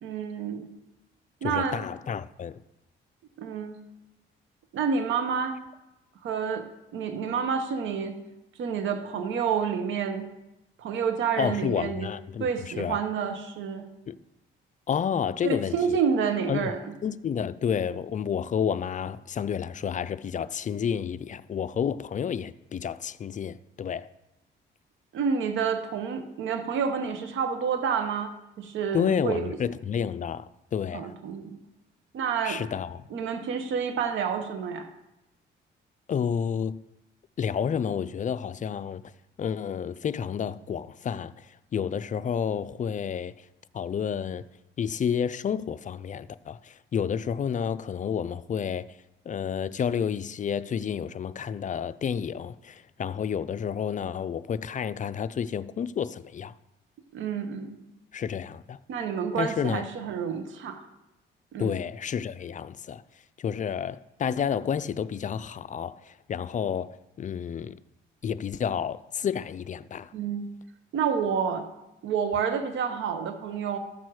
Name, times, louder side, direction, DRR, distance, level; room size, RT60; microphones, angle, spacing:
voice 1, 0.0-0.7 1.4-1.8 3.4-3.8 4.7-5.6 6.2-8.1 8.6-10.3 10.8-12.1 12.4-13.9 15.4-16.8 25.1-29.6 30.9-31.6 32.1-32.6 33.1-34.9 57.1-57.8 58.9-60.8 61.5-61.7 70.1-70.5 70.9-71.7 72.0-73.8, right 6 dB, 75° right, 1.0 m, -29 dB
voice 2, 1.4-2.6 11.4-13.0 14.1-14.2 14.9-16.0 16.5-16.7 17.0-24.1 28.9-31.1 32.4-33.0 36.1-36.8 37.4-39.0 39.4-43.3 43.7-44.4 44.8-48.9 49.3-56.5 58.1-58.8 59.4-59.9 61.6-63.0 63.4-67.8 68.2-70.1, left 7 dB, 40° left, 0.4 m, -30 dB
13.5 x 6.1 x 4.7 m
cardioid pair, 90°, 20 cm